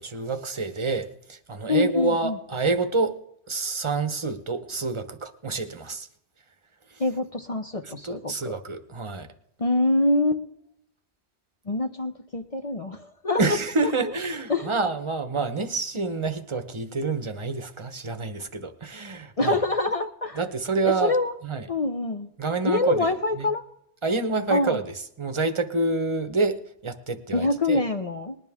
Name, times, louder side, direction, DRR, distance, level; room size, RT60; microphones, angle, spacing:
voice 1, 0.0-3.1 3.5-6.1 7.8-9.3 13.4-19.6 20.4-21.1 21.4-21.7 22.4-23.5 24.0-24.8 25.2-27.8, right 3 dB, 30° right, 8 dB, 0.9 m, -28 dB
voice 2, 1.7-2.4 7.0-8.5 9.6-10.4 11.7-13.4 14.5-14.7 19.4-20.4 20.8-21.3 21.7-22.3 22.6-23.6 24.5-24.8 27.3-28.4, left 2 dB, 40° left, 6 dB, 0.7 m, -25 dB
20.0 x 11.0 x 3.6 m, 0.75 s
omnidirectional pair, 1.1 m